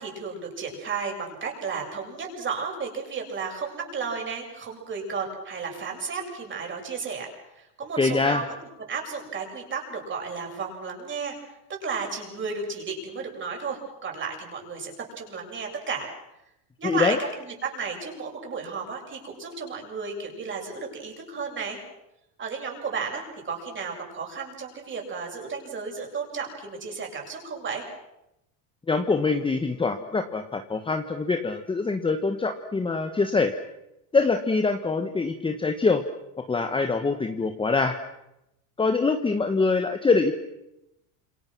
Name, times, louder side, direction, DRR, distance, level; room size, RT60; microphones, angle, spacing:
voice 1, 0.0-8.5 8.9-11.3 11.7-16.1 16.8-21.8 22.4-27.8, right 5 dB, 25° right, 1 dB, 7.8 m, -33 dB
voice 2, 8.0-8.4 16.8-17.2 28.9-33.5 34.1-36.0 36.5-38.0 38.8-40.3, left 4 dB, 10° left, 6 dB, 1.4 m, -24 dB
30.0 x 27.5 x 6.2 m, 0.89 s
supercardioid pair, 145°, 46 cm